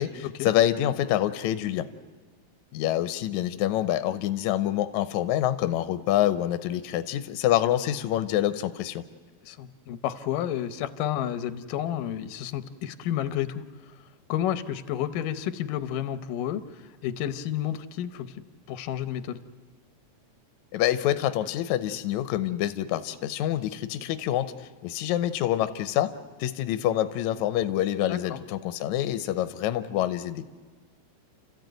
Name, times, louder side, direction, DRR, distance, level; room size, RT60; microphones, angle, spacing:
voice 1, 0.0-1.9 2.7-9.0 20.7-26.1 26.4-30.4, left 12 dB, 75° left, 11 dB, 2.1 m, -26 dB
voice 2, 9.4-13.9 14.3-18.4 18.7-19.4 28.1-28.4, left 11 dB, 90° left, 12 dB, 2.5 m, -31 dB
30.0 x 14.0 x 9.2 m, 1.4 s
omnidirectional pair, 3.7 m